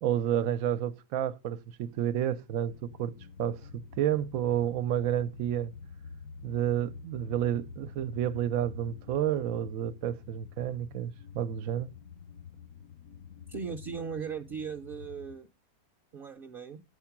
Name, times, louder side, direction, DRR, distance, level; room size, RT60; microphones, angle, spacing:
voice 1, 0.0-3.1 3.4-5.7 6.4-11.9, right 10 dB, 75° right, 1.0 m, -30 dB
sound 1, 2.7-15.4, left 6 dB, 75° left, 1.2 m, -48 dB
voice 2, 13.5-15.5 16.1-16.8, right 6 dB, 50° right, 0.7 m, -38 dB
8.3 x 4.4 x 5.8 m
omnidirectional pair, 1.5 m